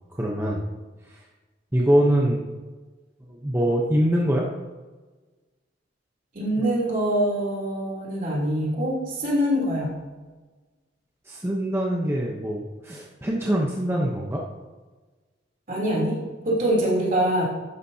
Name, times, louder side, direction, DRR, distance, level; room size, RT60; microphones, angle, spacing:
voice 1, 0.1-0.6 1.1-1.2 1.7-2.4 3.2-4.5 11.3-14.4, right 1 dB, 15° right, -2 dB, 0.9 m, -24 dB
voice 2, 6.3-10.0 15.7-17.4, right 1 dB, 45° right, -4 dB, 3.3 m, -24 dB
12.0 x 10.0 x 2.8 m, 1.3 s
head